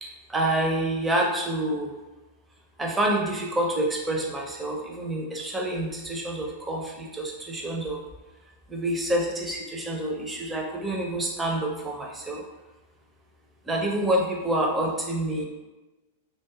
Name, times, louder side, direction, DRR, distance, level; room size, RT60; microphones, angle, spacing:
voice 1, 0.0-1.9 2.8-8.0 8.7-12.4 13.7-15.4, right 1 dB, 10° right, -1 dB, 0.4 m, -27 dB
2.5 x 2.2 x 2.2 m, 1.1 s
figure-of-eight pair, 95°, 0 cm